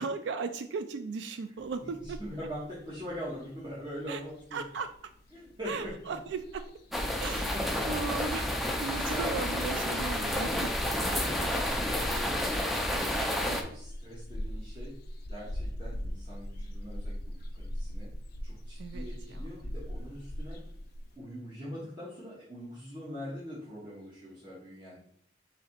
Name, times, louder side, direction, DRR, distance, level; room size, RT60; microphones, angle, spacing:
voice 1, 0.0-2.2 4.1-4.2 4.5-4.9 5.7-6.7 7.2-7.6 7.9-10.7 11.4-11.5 13.2-13.6 18.8-19.5, right 5 dB, 75° right, 9 dB, 0.3 m, -37 dB
sound 1, 1.6-21.2, equal, 55° left, 0.6 m, -42 dB
voice 2, 2.0-4.6 5.3-5.9 7.2-8.1 9.1-9.5 11.1-14.9 15.3-18.1 18.4-20.6 21.2-25.0, equal, 25° right, -8 dB, 1.1 m, -43 dB
sound 2, 6.9-13.6, left 1 dB, ahead, 0.5 m, -30 dB
4.0 x 2.8 x 4.3 m, 0.64 s
head